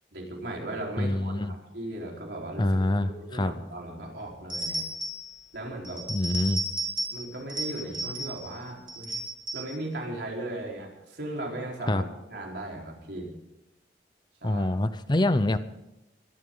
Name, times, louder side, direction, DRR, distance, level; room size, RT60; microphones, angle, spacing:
voice 1, 0.1-4.8 5.5-6.1 7.1-9.2 9.5-13.3 14.4-14.8, right 1 dB, 70° right, -1 dB, 4.3 m, -37 dB
voice 2, 1.0-1.5 2.6-3.6 6.1-6.6 11.9-12.0 14.4-15.6, left 1 dB, 25° left, 12 dB, 0.6 m, -25 dB
sound 1, 4.5-5.3 5.8-7.2 7.5-8.5 8.9-9.7, right 1 dB, 25° right, 5.0 m, -33 dB
23.5 x 13.0 x 3.9 m, 0.94 s
head